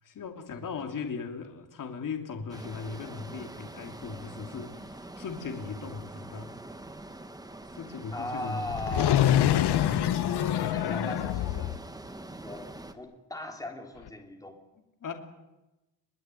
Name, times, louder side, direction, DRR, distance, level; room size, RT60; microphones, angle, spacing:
voice 1, 0.0-6.5 7.7-8.7 9.1-10.1 10.4-11.1 15.0-15.1, left 5 dB, 50° left, 4 dB, 3.0 m, -38 dB
sound 1, 2.5-12.9, right 2 dB, 10° right, 1.3 m, -44 dB
voice 2, 8.1-9.2 10.2-11.7 12.4-14.6, left 1 dB, 10° left, 3 dB, 3.4 m, -39 dB
sound 2, 8.7-11.8 14.1-14.2, left 11 dB, 70° left, 1.0 m, -25 dB
22.5 x 22.0 x 9.2 m, 1.0 s
cardioid pair, 155°, 42 cm